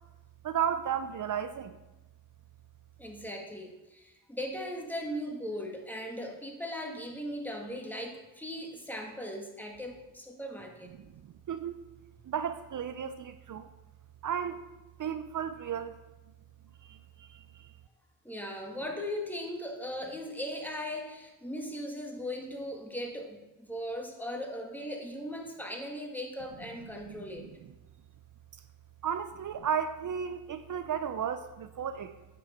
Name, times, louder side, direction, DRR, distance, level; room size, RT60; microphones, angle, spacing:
voice 1, 0.4-1.8 10.9-11.8 12.2-13.7 14.2-14.6 15.0-15.9 16.8-17.7 26.8-27.7 29.0-32.1, right 8 dB, 45° right, 10 dB, 0.6 m, -34 dB
voice 2, 3.0-10.9 18.2-27.5, equal, 5° left, 1 dB, 1.8 m, -38 dB
9.1 x 6.1 x 4.3 m, 1.0 s
supercardioid pair, 65°, 46 cm